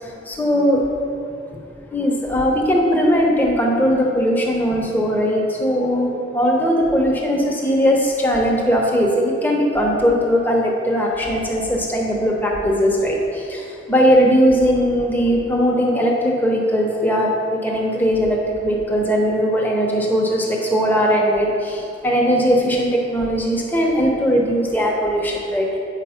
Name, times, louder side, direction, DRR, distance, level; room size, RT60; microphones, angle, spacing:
voice 1, 0.3-0.8 1.9-13.2 13.5-13.6 13.9-25.7, equal, 10° left, -2 dB, 0.9 m, -19 dB
9.0 x 4.6 x 5.7 m, 2.6 s
head